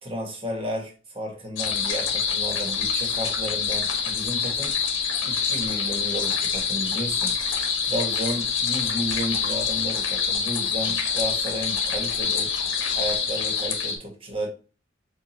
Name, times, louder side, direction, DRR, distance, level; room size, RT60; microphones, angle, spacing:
voice 1, 0.0-4.7 5.2-7.3 7.8-12.5 12.9-14.5, equal, 30° right, 1 dB, 1.3 m, -32 dB
sound 1, 1.6-14.0, left 6 dB, 80° left, 1.3 m, -26 dB
7.2 x 2.6 x 2.6 m, 0.35 s
head